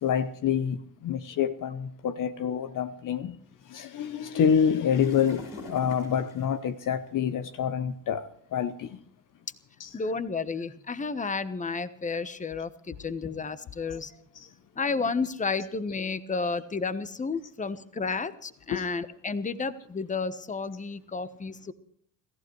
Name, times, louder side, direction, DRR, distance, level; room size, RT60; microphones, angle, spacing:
voice 1, 0.0-3.4 3.7-9.0 9.8-9.9 18.7-18.9, left 8 dB, 45° left, 0.9 m, -27 dB
sound 1, 4.0-7.5 8.2-8.4 9.1-9.2 9.5-9.7 10.3-10.8 11.7-12.8 13.2-13.8 14.2-14.5 14.9-17.6, left 2 dB, 75° left, 6.0 m, -48 dB
voice 2, 9.9-14.1 14.8-21.7, left 4 dB, 15° left, 1.1 m, -31 dB
29.0 x 15.0 x 3.2 m
supercardioid pair, 75°, 43 cm